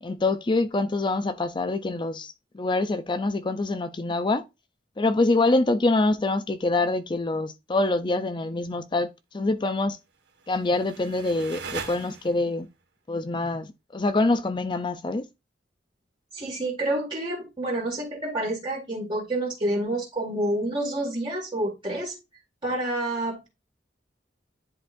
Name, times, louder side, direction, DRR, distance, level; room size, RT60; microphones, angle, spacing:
voice 1, 0.0-4.5 5.0-9.1 9.3-10.0 10.5-12.7 13.1-15.2, left 2 dB, 25° left, 0.5 m, -25 dB
sound 1, 10.3-12.6, right 4 dB, 80° right, 1.7 m, -39 dB
voice 2, 16.3-22.1 22.6-23.5, right 1 dB, 30° right, 2.1 m, -28 dB
10.5 x 3.9 x 2.6 m
head